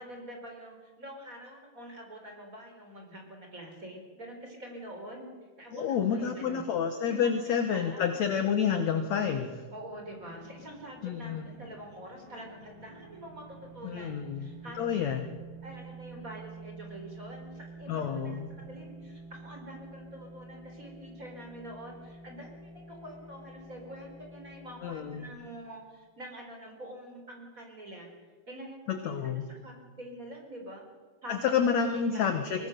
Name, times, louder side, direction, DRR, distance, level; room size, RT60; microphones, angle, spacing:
voice 1, 0.0-6.6 7.1-7.3 7.6-8.0 9.7-14.9 15.6-30.8 31.2-32.7, right 1 dB, 20° right, 2 dB, 4.2 m, -46 dB
voice 2, 5.7-9.6 11.0-11.5 13.8-14.5 14.8-15.4 17.9-18.5 24.8-25.3 28.9-29.5 31.3-32.6, left 7 dB, 65° left, 7 dB, 1.8 m, -29 dB
sound 1, 9.8-25.3, right 3 dB, 80° right, 8.9 m, -49 dB
24.0 x 18.5 x 6.7 m, 1.4 s
omnidirectional pair, 4.8 m